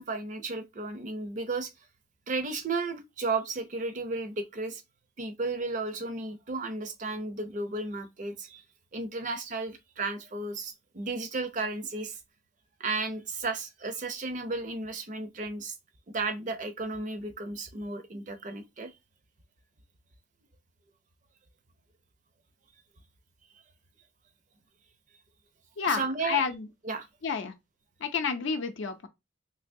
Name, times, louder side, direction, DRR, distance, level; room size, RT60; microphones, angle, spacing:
voice 1, 0.0-1.7 2.3-4.8 5.2-8.6 8.9-12.2 12.8-15.7 16.1-18.9 25.9-26.4 26.8-27.1, right 3 dB, 40° right, 0.5 m, -34 dB
voice 2, 25.8-26.7 27.2-27.5 28.0-29.1, left 6 dB, 65° left, 0.5 m, -30 dB
3.3 x 2.9 x 2.6 m
head